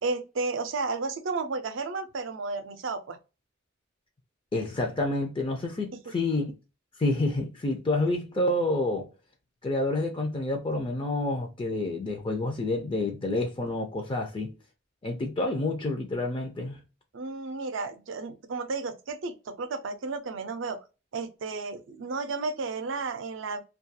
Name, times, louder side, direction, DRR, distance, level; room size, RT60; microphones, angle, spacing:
voice 1, 0.0-3.2 6.1-6.2 17.1-20.8 21.1-23.6, right 3 dB, 70° right, 0.5 m, -33 dB
voice 2, 4.5-6.5 7.0-9.1 9.6-14.5 15.0-16.8, left 2 dB, 25° left, 0.4 m, -28 dB
2.3 x 2.3 x 2.6 m
head